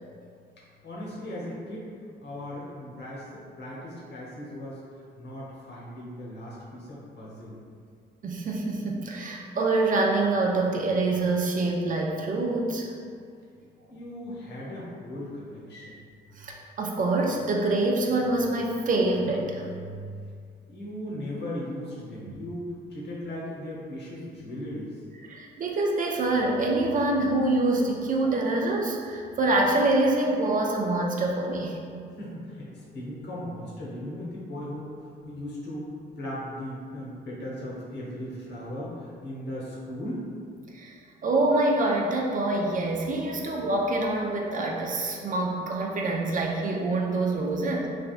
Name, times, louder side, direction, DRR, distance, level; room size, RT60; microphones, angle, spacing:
voice 1, 0.8-1.9 2.2-4.8 5.2-7.6 13.9-16.0 20.7-25.0 30.5-30.6 31.5-31.6 32.2-35.9 36.2-40.2, left 1 dB, 60° left, -6 dB, 1.0 m, -37 dB
voice 2, 8.2-12.9 16.4-20.1 22.2-22.3 25.3-32.2 40.7-47.9, right 2 dB, 40° right, -1 dB, 0.4 m, -26 dB
3.2 x 2.3 x 2.4 m, 2.3 s
cardioid pair, 90°, 20 cm